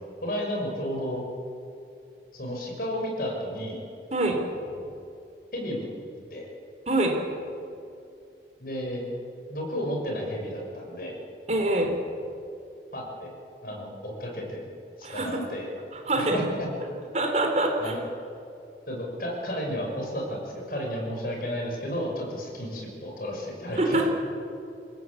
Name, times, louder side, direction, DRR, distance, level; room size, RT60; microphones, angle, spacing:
voice 1, 0.2-1.2 2.3-3.8 4.7-4.9 5.5-5.9 6.3-6.5 8.6-9.0 9.5-11.2 12.9-13.3 13.6-14.7 15.0-15.7 16.2-16.7 17.8-18.0 18.9-24.1, equal, 55° left, 0 dB, 6.1 m, -32 dB
voice 2, 6.9-7.2 11.5-11.9 15.0-15.4 15.9-16.4 17.1-17.9 23.8-24.1, right 2 dB, 40° right, 3 dB, 3.4 m, -25 dB
28.0 x 17.0 x 8.5 m, 2.6 s
head